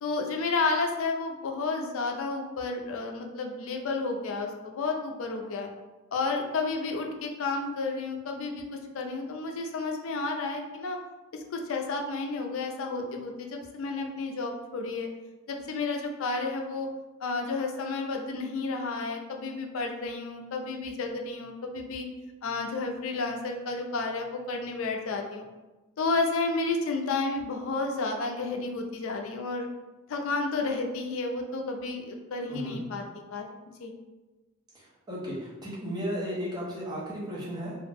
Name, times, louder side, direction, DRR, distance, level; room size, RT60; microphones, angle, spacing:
voice 1, 0.0-5.7 6.1-11.0 11.3-15.1 15.5-16.9 17.2-22.1 22.4-25.4 26.0-29.7 30.1-33.0 33.3-33.5 33.8-33.9, left 3 dB, 65° left, 3 dB, 0.4 m, -31 dB
voice 2, 32.5-32.8 34.7-37.7, equal, 20° right, -6 dB, 0.6 m, -35 dB
2.4 x 2.0 x 3.3 m, 1.2 s
head